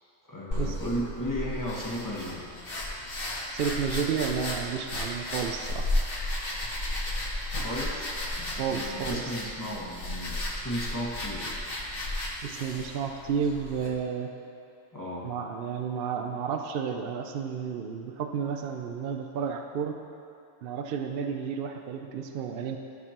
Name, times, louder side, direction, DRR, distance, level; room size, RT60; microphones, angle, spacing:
voice 1, 0.3-2.5 7.5-8.0 8.4-11.6 14.9-15.3, equal, 15° left, -6 dB, 1.4 m, -35 dB
sound 1, 0.5-13.9, left 1 dB, 45° left, 1.5 m, -34 dB
voice 2, 3.5-5.9 8.6-9.2 12.4-14.3 15.2-20.0 20.6-22.8, right 7 dB, 60° right, 4 dB, 0.6 m, -31 dB
14.0 x 6.5 x 2.9 m, 2.8 s
omnidirectional pair, 1.4 m